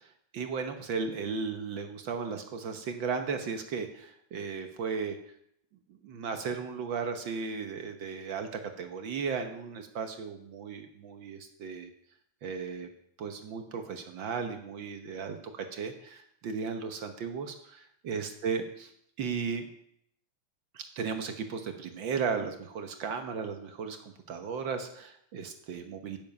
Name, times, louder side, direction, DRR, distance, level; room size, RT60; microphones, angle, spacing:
voice 1, 0.0-5.2 6.0-11.9 12.4-12.9 13.2-18.6 19.2-19.7 20.7-26.2, right 5 dB, 65° right, 6 dB, 1.2 m, -35 dB
16.0 x 7.2 x 5.3 m, 0.71 s
omnidirectional pair, 3.3 m